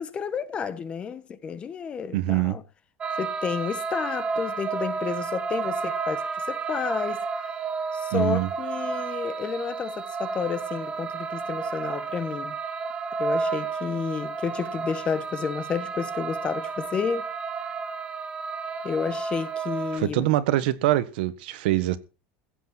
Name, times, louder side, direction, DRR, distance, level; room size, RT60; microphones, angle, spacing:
voice 1, 0.0-2.6 3.2-7.2 7.9-12.6 13.2-17.3 18.8-20.3, left 6 dB, 20° left, 1.1 m, -31 dB
voice 2, 2.1-2.6 8.1-8.5 19.9-22.0, right 15 dB, 85° right, 1.4 m, -24 dB
sound 1, 3.0-20.0, right 5 dB, 20° right, 1.0 m, -31 dB
16.0 x 8.5 x 5.9 m
cardioid pair, 170°, 5 cm